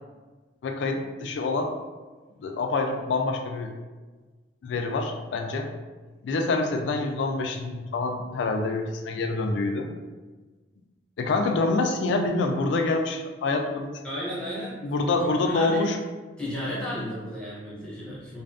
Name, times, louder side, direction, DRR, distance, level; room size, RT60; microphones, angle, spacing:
voice 1, 0.6-1.7 2.4-3.7 4.6-5.7 6.2-9.9 11.2-13.9 14.8-16.0 18.1-18.2, left 3 dB, 80° left, 4 dB, 0.3 m, -26 dB
voice 2, 14.0-15.1 15.4-15.8 16.4-18.4, equal, 5° left, -8 dB, 0.6 m, -34 dB
2.6 x 2.3 x 2.4 m, 1.3 s
head